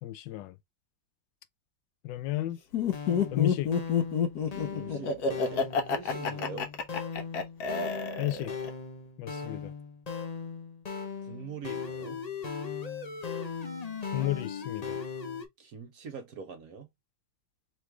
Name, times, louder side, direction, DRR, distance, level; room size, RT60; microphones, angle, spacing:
voice 1, 0.0-0.6 2.0-2.6 3.3-3.7 8.2-8.5 9.2-9.7 14.1-15.0, left 16 dB, 80° left, 1.3 m, -32 dB
Laughter, 2.7-8.7, left 6 dB, 60° left, 1.3 m, -28 dB
sound 1, 2.9-15.4, left 5 dB, 40° left, 0.5 m, -38 dB
voice 2, 4.7-6.7 11.2-12.2 15.6-16.9, right 5 dB, 55° right, 1.3 m, -43 dB
3.7 x 3.2 x 3.3 m
omnidirectional pair, 2.0 m